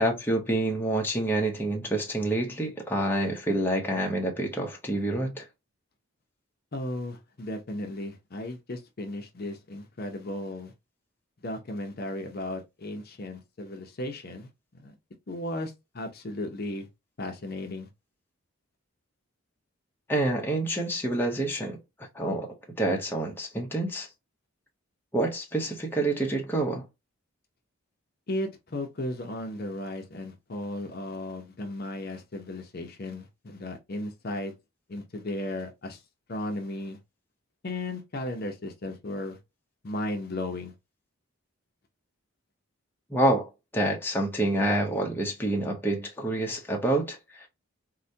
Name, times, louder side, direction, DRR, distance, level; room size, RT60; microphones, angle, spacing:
voice 1, 0.0-5.4 20.1-21.8 22.1-24.1 25.1-26.8 43.1-47.5, right 1 dB, 10° left, 0.7 m, -27 dB
voice 2, 6.7-10.7 11.4-14.9 15.3-16.9 17.2-17.9 28.3-34.5 34.9-36.0 36.3-37.0 37.6-39.4 39.8-40.7, left 1 dB, 45° left, 0.6 m, -35 dB
4.7 x 2.1 x 2.6 m
head